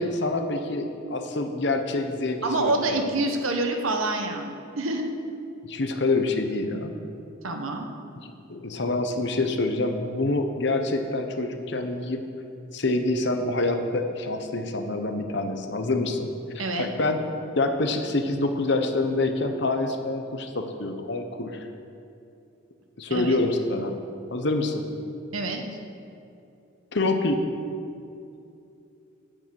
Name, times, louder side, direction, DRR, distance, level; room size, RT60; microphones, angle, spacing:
voice 1, 0.0-3.0 5.6-6.9 8.5-12.2 12.7-16.3 16.5-17.2 17.6-21.6 23.0-23.9 24.3-24.9 26.9-27.4, left 2 dB, 55° left, 6 dB, 0.9 m, -26 dB
voice 2, 2.4-5.1 7.4-7.9 16.6-16.9 23.1-23.4 25.3-25.6, right 2 dB, 85° right, 4 dB, 1.1 m, -27 dB
9.0 x 6.7 x 7.7 m, 2.6 s
head